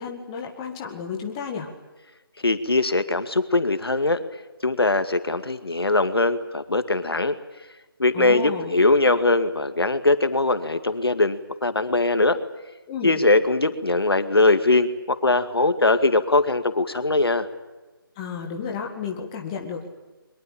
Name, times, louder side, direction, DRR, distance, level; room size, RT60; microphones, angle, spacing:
voice 1, 0.0-1.7 8.1-8.7 12.9-13.2 18.2-19.9, left 6 dB, 15° left, 2 dB, 2.1 m, -32 dB
voice 2, 2.4-4.2 4.6-7.4 8.0-12.4 13.0-17.5, left 2 dB, 85° left, 10 dB, 2.2 m, -21 dB
23.0 x 22.0 x 8.7 m, 1.1 s
figure-of-eight pair, 165°, 12 cm